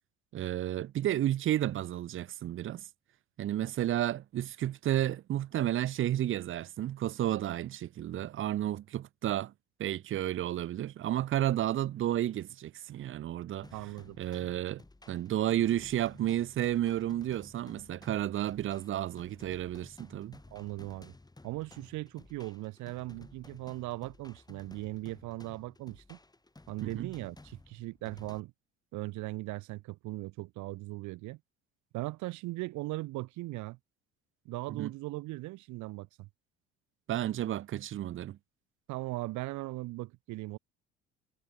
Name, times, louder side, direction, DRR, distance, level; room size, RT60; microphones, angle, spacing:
voice 1, 0.3-2.8 3.4-9.5 9.8-13.7 14.2-20.4 26.8-27.1 34.7-34.9 37.1-38.4, right 12 dB, 40° right, 0.7 m, -32 dB
sound 1, 13.6-28.4, left 2 dB, 10° left, 5.5 m, -55 dB
voice 2, 13.7-14.2 20.5-21.1 21.4-26.2 26.7-28.5 28.9-31.4 31.9-33.8 34.4-36.3 38.9-40.6, right 20 dB, 65° right, 3.1 m, -39 dB
hypercardioid pair, 70°, 32 cm